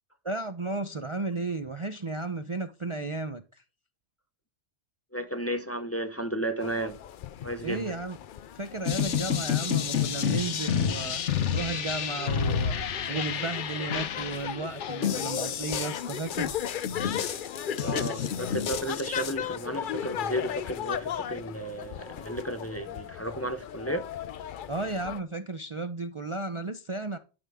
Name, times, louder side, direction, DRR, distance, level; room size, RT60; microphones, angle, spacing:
voice 1, 0.2-3.6 7.6-8.2 8.5-16.6 24.7-27.2, right 3 dB, 35° right, 0.6 m, -34 dB
voice 2, 5.1-7.0 7.4-7.8 17.8-24.1, right 1 dB, 15° left, 0.7 m, -33 dB
sound 1, 6.6-25.2, left 10 dB, 55° left, 0.6 m, -37 dB
sound 2, 8.9-19.3, left 7 dB, 90° left, 1.2 m, -30 dB
11.5 x 5.6 x 3.5 m
omnidirectional pair, 1.2 m